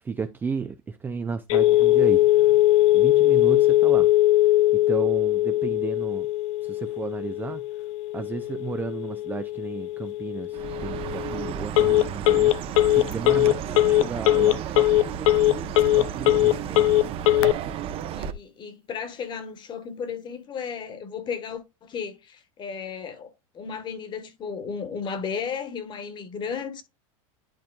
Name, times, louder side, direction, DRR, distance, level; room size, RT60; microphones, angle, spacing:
voice 1, 0.0-2.5 2.9-4.1 4.7-6.3 6.6-7.8 8.1-12.6 12.9-16.9, right 5 dB, 10° right, 0.4 m, -34 dB
Telephone, 1.5-17.5, left 16 dB, 70° left, 0.5 m, -21 dB
Chirp tweet, 10.5-18.3, right 9 dB, 35° right, 0.8 m, -33 dB
voice 2, 18.1-26.8, left 6 dB, 25° left, 1.4 m, -34 dB
11.0 x 4.3 x 2.3 m
supercardioid pair, 145°, 17 cm